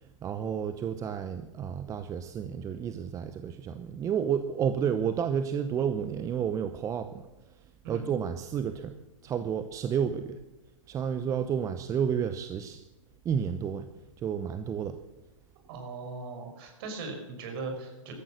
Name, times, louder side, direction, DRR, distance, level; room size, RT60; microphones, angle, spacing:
voice 1, 0.2-7.1 7.9-8.9 9.2-10.4 10.9-12.8 13.2-13.9 14.2-15.0, right 8 dB, 20° right, 10 dB, 0.8 m, -31 dB
voice 2, 15.7-18.1, right 3 dB, 45° right, 4 dB, 5.3 m, -39 dB
17.0 x 13.5 x 6.3 m, 1.0 s
hypercardioid pair, 120°, 17 cm